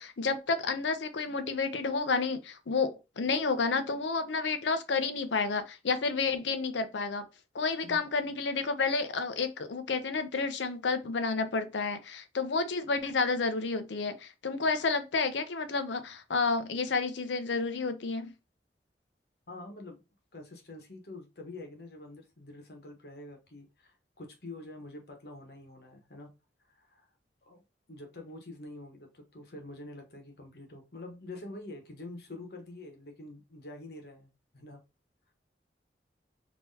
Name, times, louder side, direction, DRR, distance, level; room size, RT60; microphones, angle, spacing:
voice 1, 0.0-7.2 7.5-18.3, left 4 dB, 85° left, 0.6 m, -30 dB
voice 2, 7.8-8.4 19.5-20.0 20.3-26.3 26.7-27.1 27.5-27.6 27.9-34.8, left 2 dB, 60° left, 1.1 m, -46 dB
3.8 x 2.8 x 2.7 m
head